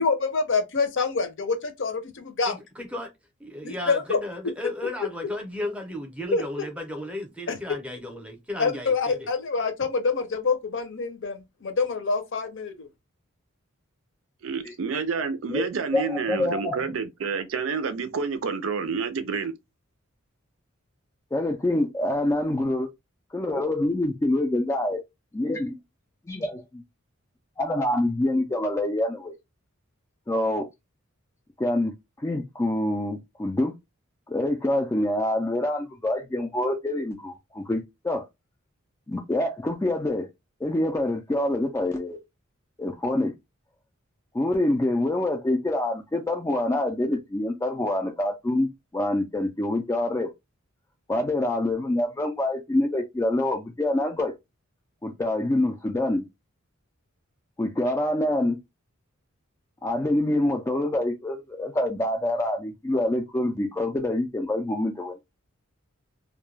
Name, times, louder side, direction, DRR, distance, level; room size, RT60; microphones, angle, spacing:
voice 1, 0.0-2.6 3.6-4.2 6.3-6.4 8.6-12.9, left 4 dB, 60° left, 0.6 m, -26 dB
voice 2, 2.4-3.1 3.4-9.3, left 1 dB, 5° right, 0.7 m, -34 dB
voice 3, 14.4-19.5, right 5 dB, 70° right, 0.5 m, -29 dB
voice 4, 15.9-16.8 21.3-22.9 23.3-25.0 25.4-25.7 26.3-26.6 27.6-29.3 30.3-30.7 31.6-33.7 34.3-38.3 39.1-40.3 40.6-42.2 42.8-43.3 44.3-50.3 51.1-54.3 55.0-56.3 57.6-58.6 59.8-65.1, left 1 dB, 15° left, 0.3 m, -26 dB
2.2 x 2.2 x 3.2 m
head